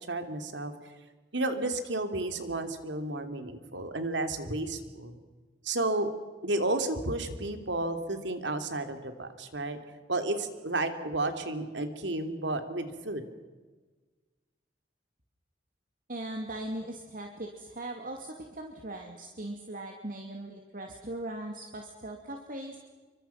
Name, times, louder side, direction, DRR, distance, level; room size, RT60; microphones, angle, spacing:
voice 1, 0.1-0.7 1.3-5.2 5.6-6.1 6.4-9.8 10.1-13.2, right 2 dB, 80° right, 7 dB, 2.9 m, -32 dB
voice 2, 16.1-22.8, right 1 dB, 50° right, 2 dB, 2.5 m, -39 dB
28.0 x 25.0 x 5.9 m, 1.3 s
head